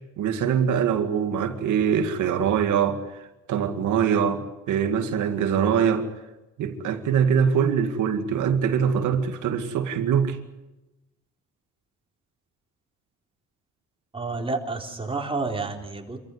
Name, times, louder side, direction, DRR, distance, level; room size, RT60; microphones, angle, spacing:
voice 1, 0.2-3.0 3.5-6.1 6.6-10.4, right 7 dB, 80° right, 2.2 m, -23 dB
voice 2, 14.1-16.2, right 3 dB, 20° right, 3.9 m, -30 dB
26.5 x 14.5 x 9.7 m
cardioid pair, 90°, 30 cm